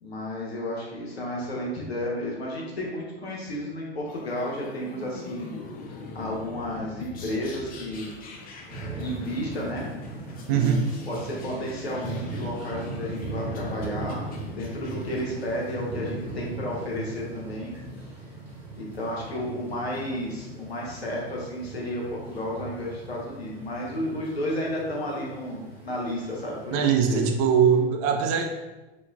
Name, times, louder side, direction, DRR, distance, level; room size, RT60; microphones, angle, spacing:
voice 1, 0.0-5.5 6.1-8.1 9.0-9.8 10.4-10.8 11.1-14.2 14.5-17.7 18.8-27.3, left 1 dB, 90° left, -3 dB, 0.9 m, -32 dB
sound 1, 4.1-16.8, left 3 dB, 30° left, 0.5 m, -43 dB
sound 2, 8.7-27.8, right 2 dB, 5° right, 1.0 m, -39 dB
voice 2, 10.5-10.8 26.7-28.5, right 7 dB, 40° right, 5 dB, 0.4 m, -21 dB
4.0 x 2.2 x 2.3 m, 1.1 s
hypercardioid pair, 85°, 30 cm